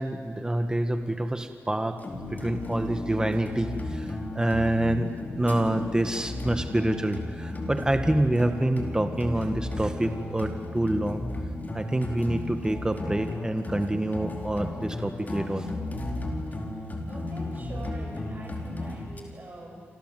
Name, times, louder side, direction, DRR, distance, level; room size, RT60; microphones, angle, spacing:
voice 1, 0.0-11.3 11.7-15.7, right 1 dB, 15° right, 7 dB, 1.8 m, -27 dB
sound 1, 2.0-19.2, left 2 dB, 35° left, 4.6 m, -34 dB
voice 2, 17.1-19.9, right 2 dB, 40° right, 1 dB, 7.3 m, -44 dB
28.0 x 27.0 x 7.8 m, 2.2 s
cardioid pair, 55°, 5 cm